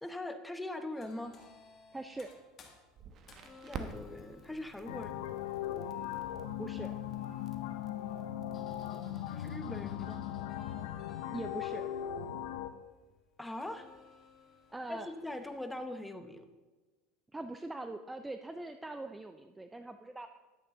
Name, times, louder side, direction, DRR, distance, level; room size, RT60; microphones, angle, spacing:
voice 1, 0.0-1.3 3.6-5.4 9.3-10.2 13.4-13.9 14.9-16.5, left 1 dB, 5° left, 8 dB, 0.9 m, -41 dB
sound 1, 0.9-15.9, left 4 dB, 35° left, 1.8 m, -61 dB
voice 2, 1.9-2.3 6.6-7.0 11.2-11.9 14.7-15.1 17.3-20.3, right 2 dB, 10° right, 8 dB, 0.4 m, -42 dB
Crackle, 2.9-9.5, right 5 dB, 45° right, 1.0 m, -50 dB
sound 2, 4.9-12.7, left 11 dB, 80° left, 0.7 m, -38 dB
10.5 x 8.5 x 3.8 m, 1.2 s
supercardioid pair, 105°, 0 cm